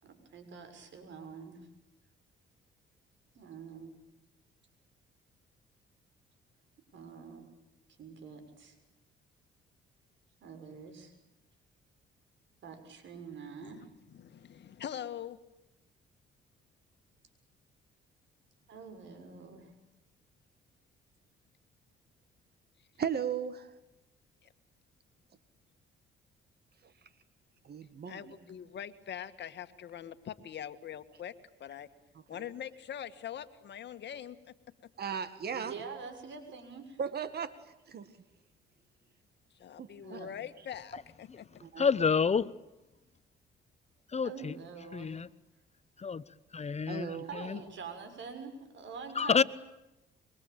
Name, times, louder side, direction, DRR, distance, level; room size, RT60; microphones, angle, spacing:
voice 1, 0.0-1.7 3.3-3.9 6.9-7.5 8.0-8.8 10.4-11.1 12.6-13.9 18.7-19.7 28.1-28.5 35.5-37.0 40.0-40.4 44.2-45.2 47.2-49.4, right 5 dB, 70° right, 8 dB, 6.8 m, -46 dB
voice 2, 14.2-15.4 28.1-31.3 31.6-31.9 32.3-34.4 39.6-41.5, left 9 dB, 60° left, 10 dB, 1.8 m, -43 dB
voice 3, 23.0-23.7 27.6-28.3 32.3-32.4 35.0-35.7 37.0-37.6 37.9-38.1 39.8-40.3 41.6-41.9 46.9-47.3, right 7 dB, 55° right, 12 dB, 2.0 m, -36 dB
voice 4, 41.8-42.5 44.1-44.5 44.9-45.3 46.0-46.2 46.5-47.2 47.5-47.6 49.2-49.4, left 5 dB, 35° left, 16 dB, 0.9 m, -28 dB
26.5 x 23.5 x 9.0 m, 0.93 s
cardioid pair, 90°, 20 cm